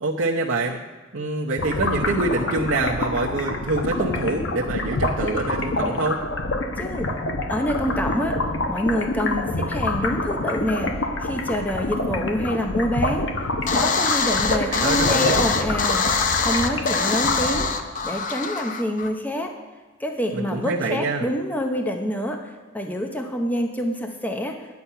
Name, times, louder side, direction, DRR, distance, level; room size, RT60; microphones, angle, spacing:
voice 1, 0.0-0.8 1.1-6.2 14.7-15.4 20.3-21.3, right 3 dB, 85° right, -3 dB, 0.9 m, -25 dB
sound 1, 1.6-18.0, left 2 dB, 65° left, 1.0 m, -26 dB
voice 2, 6.8-7.1 7.5-8.4 8.7-10.9 11.2-13.3 13.7-16.0 16.3-17.7 18.0-19.5 20.0-24.6, equal, 10° left, 3 dB, 0.7 m, -26 dB
sound 2, 13.7-19.1, left 5 dB, 40° left, 0.7 m, -24 dB
10.5 x 8.5 x 5.6 m, 1.3 s
head